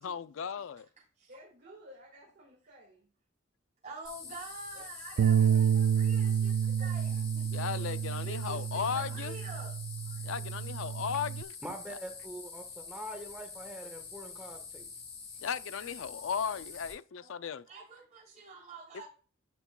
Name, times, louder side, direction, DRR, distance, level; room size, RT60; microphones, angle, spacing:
voice 1, 0.0-0.9 7.5-9.3 10.2-11.6 11.9-12.0 15.4-17.6, left 7 dB, 70° left, 0.4 m, -36 dB
voice 2, 1.3-3.1 4.7-6.1 6.6-7.2 7.7-7.9 8.4-8.5 16.5-17.5, equal, 55° right, 1.9 m, -56 dB
voice 3, 3.8-5.6 5.9-7.7 8.2-9.8 10.0-10.2 17.7-19.1, right 3 dB, 35° right, 3.7 m, -47 dB
sound 1, 4.0-16.9, left 5 dB, 30° left, 3.2 m, -46 dB
Bass guitar, 5.2-11.4, right 8 dB, 90° right, 0.3 m, -29 dB
voice 4, 11.6-14.9, equal, 5° right, 1.3 m, -44 dB
11.0 x 6.1 x 2.3 m
head